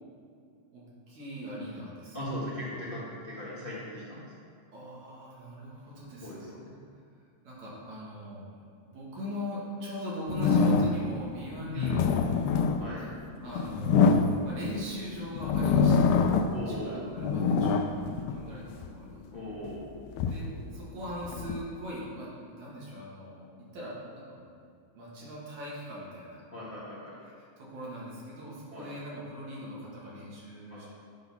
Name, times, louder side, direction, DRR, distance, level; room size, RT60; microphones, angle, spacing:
voice 1, 0.7-2.2 2.6-2.8 4.7-6.5 7.4-8.6 8.9-12.5 13.4-14.2 14.4-17.8 18.3-19.2 20.3-23.5 23.7-24.4 24.9-26.4 27.6-30.9, equal, 70° right, -7 dB, 3.3 m, -41 dB
voice 2, 2.1-4.3 6.2-6.7 11.7-12.0 12.8-13.1 16.5-17.1 19.3-19.9 26.5-27.1 28.7-28.9 30.7-30.8, left 1 dB, 30° left, -8 dB, 1.0 m, -38 dB
sound 1, 10.3-11.2 11.7-14.9 15.4-16.7 17.0-18.9 19.5-21.6, left 5 dB, 85° left, 2.0 m, -25 dB
9.9 x 4.0 x 5.6 m, 2.4 s
omnidirectional pair, 3.4 m